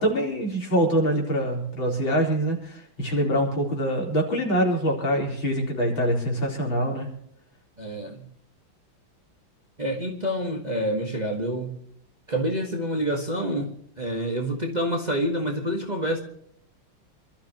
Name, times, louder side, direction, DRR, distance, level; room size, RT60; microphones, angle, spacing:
voice 1, 0.0-7.1, right 1 dB, 70° left, -1 dB, 5.0 m, -24 dB
voice 2, 7.8-8.2 9.8-11.7 12.3-13.7 14.0-16.2, equal, 20° right, 1 dB, 1.6 m, -27 dB
27.5 x 13.0 x 3.0 m, 0.67 s
omnidirectional pair, 2.3 m